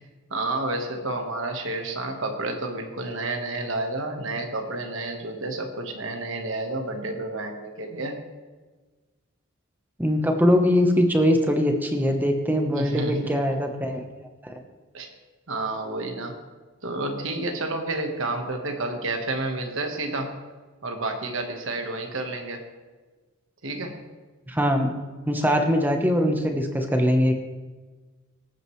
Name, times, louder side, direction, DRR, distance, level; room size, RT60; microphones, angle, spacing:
voice 1, 0.3-8.2 12.7-13.4 14.9-15.1 15.5-16.4 16.8-20.3 20.8-22.6 23.6-24.0, right 2 dB, 65° right, 4 dB, 1.4 m, -30 dB
voice 2, 10.0-14.0 14.4-14.5 24.5-24.9 25.3-27.3, equal, 10° right, 3 dB, 1.0 m, -22 dB
19.0 x 9.0 x 3.2 m, 1.3 s
head